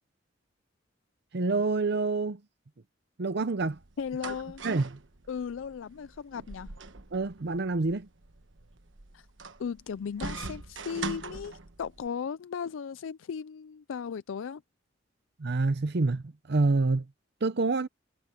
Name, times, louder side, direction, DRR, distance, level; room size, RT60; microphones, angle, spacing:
voice 1, 1.3-2.4 3.2-3.8 4.6-5.0 7.1-8.1 15.4-17.1 17.4-17.9, right 3 dB, 60° right, 0.7 m, -27 dB
sound 1, 3.7-12.1, right 3 dB, 75° right, 1.3 m, -42 dB
voice 2, 4.0-4.6 5.3-6.8 9.1-9.3 9.6-14.6, left 6 dB, 90° left, 0.4 m, -36 dB
head